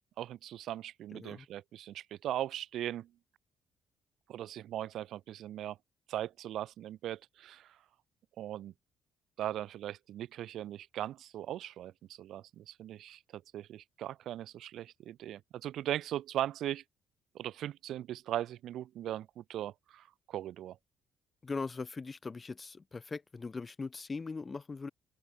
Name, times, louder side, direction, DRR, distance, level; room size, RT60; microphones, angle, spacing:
voice 1, 0.2-3.1 4.3-5.8 6.1-7.8 8.4-8.7 9.4-16.8 17.3-20.8, right 12 dB, 75° right, 1.9 m, -39 dB
voice 2, 1.1-1.5 21.4-24.9, left 4 dB, 30° left, 1.5 m, -40 dB
open air
cardioid pair, 90°, 0 cm